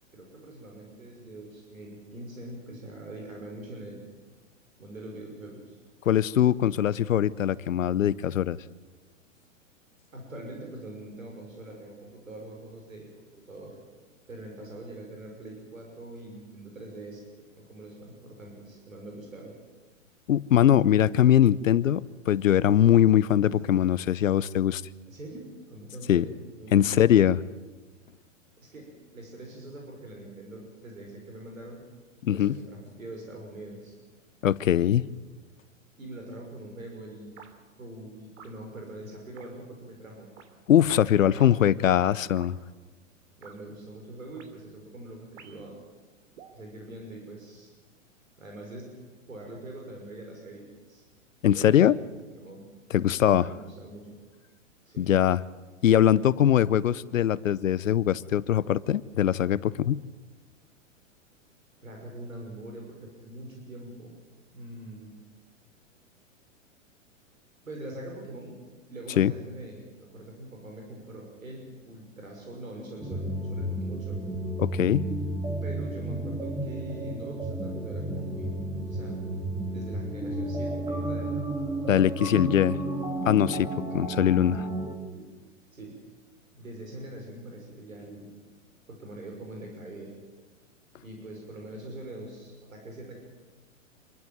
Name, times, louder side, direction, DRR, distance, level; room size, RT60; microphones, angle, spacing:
voice 1, 0.1-4.0 4.8-5.8 10.1-13.1 13.3-13.7 14.3-17.2 17.6-19.5 25.1-27.1 28.6-31.8 32.3-33.9 36.0-37.3 37.8-40.3 41.1-41.7 43.4-45.8 46.5-47.7 48.4-48.9 49.3-51.0 51.5-52.6 53.2-54.2 54.9-55.1 61.8-64.2 64.5-65.2 67.6-68.5 68.9-74.2 75.6-79.2 79.7-81.5 82.1-82.5 85.1-85.3 85.7-86.0 86.5-88.3 88.9-90.1 91.0-93.1, right 1 dB, 90° right, 1 dB, 6.0 m, -43 dB
voice 2, 6.1-8.6 20.3-24.8 26.1-26.2 26.7-27.4 32.2-32.6 34.4-35.1 40.7-42.6 51.4-52.0 52.9-53.4 55.0-55.4 55.8-60.0 69.2-69.3 74.6-75.1 81.9-82.7 83.2-83.7 83.9-84.7, left 10 dB, 75° left, 19 dB, 0.9 m, -22 dB
sound 1, 37.4-37.5 38.4-38.6 39.4-39.5 40.4-40.5 41.4-41.5 42.4-42.5 43.4-43.6 44.4-44.5 45.4-45.7 46.4-46.6, right 7 dB, 60° right, 3.0 m, -50 dB
sound 2, 73.0-84.9, right 1 dB, 10° right, 2.4 m, -32 dB
26.5 x 13.5 x 9.3 m, 1.3 s
hypercardioid pair, 115°, 39 cm